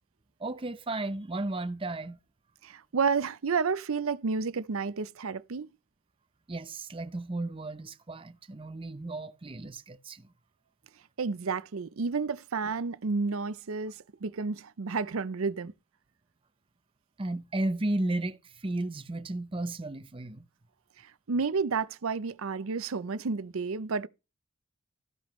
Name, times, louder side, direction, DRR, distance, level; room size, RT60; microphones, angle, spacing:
voice 1, 0.4-2.2 6.5-10.3 17.2-20.4, right 2 dB, 25° right, 0.6 m, -34 dB
voice 2, 2.6-5.7 11.2-15.7 21.0-24.1, right 5 dB, 80° right, 0.6 m, -31 dB
13.5 x 10.0 x 3.1 m
head